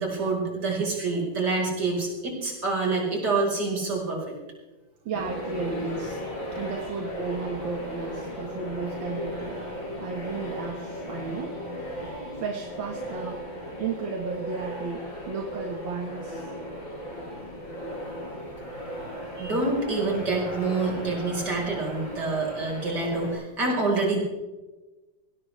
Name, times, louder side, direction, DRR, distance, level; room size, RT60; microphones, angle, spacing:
voice 1, 0.0-4.4 19.4-24.2, right 3 dB, 60° right, -1 dB, 5.3 m, -27 dB
sound 1, 5.1-23.3, equal, 80° left, 5.3 m, -36 dB
voice 2, 5.1-6.2 6.5-9.6 10.0-11.6 12.4-13.4 13.8-16.5, right 4 dB, 80° right, 1 dB, 2.3 m, -33 dB
20.5 x 17.5 x 3.4 m, 1.1 s
omnidirectional pair, 2.1 m